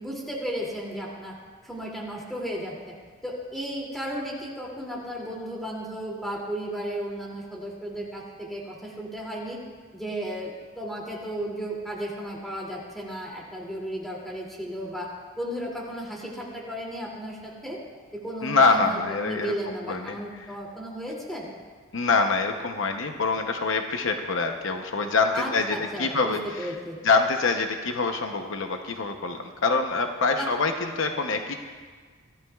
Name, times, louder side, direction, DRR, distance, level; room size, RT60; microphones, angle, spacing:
voice 1, 0.0-1.4 1.6-2.9 3.2-9.6 9.9-15.1 15.4-17.8 18.1-21.5 25.3-27.0 30.3-30.5, equal, ahead, -4 dB, 2.6 m, -34 dB
voice 2, 18.4-19.5 19.9-20.2 21.9-26.7 27.0-31.5, left 4 dB, 65° left, 5 dB, 0.8 m, -25 dB
23.5 x 14.5 x 2.4 m, 1.5 s
head